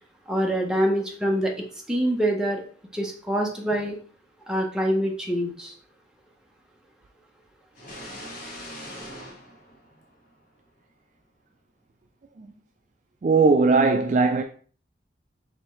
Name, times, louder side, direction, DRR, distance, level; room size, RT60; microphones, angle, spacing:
voice 1, 0.3-1.5 1.9-2.6 2.9-4.0 4.5-5.7, equal, 5° right, 0.8 m, -25 dB
sound 1, 7.7-10.6, left 1 dB, 45° left, 1.3 m, -41 dB
voice 2, 13.2-14.4, right 4 dB, 40° right, 0.3 m, -19 dB
4.9 x 3.5 x 3.0 m
head